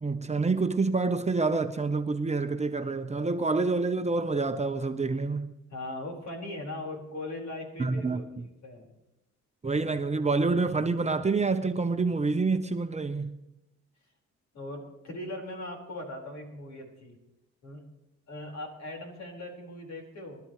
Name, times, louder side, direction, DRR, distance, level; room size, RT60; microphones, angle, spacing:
voice 1, 0.0-5.5 7.8-8.2 9.6-13.4, right 3 dB, 20° right, 0.8 m, -27 dB
voice 2, 5.7-8.9 14.5-17.2 17.6-17.8 18.3-20.4, left 1 dB, 60° left, 4.8 m, -39 dB
24.0 x 12.5 x 3.2 m
cardioid pair, 90°, 30 cm